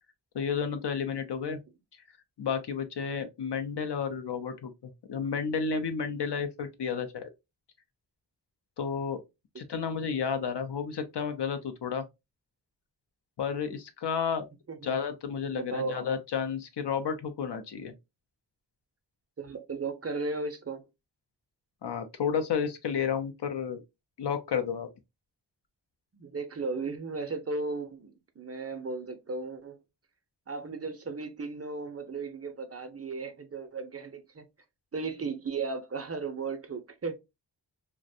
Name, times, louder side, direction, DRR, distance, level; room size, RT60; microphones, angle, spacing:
voice 1, 0.3-1.6 2.4-7.3 8.8-9.2 9.6-12.0 13.4-14.5 14.8-17.9 21.8-23.8 24.2-24.9, left 6 dB, 70° left, 0.6 m, -31 dB
voice 2, 15.5-16.1 19.4-20.9 26.1-29.8 30.5-34.4 34.9-37.1, right 3 dB, 35° right, 0.5 m, -35 dB
2.4 x 2.1 x 2.6 m
wide cardioid pair, 90°, 42 cm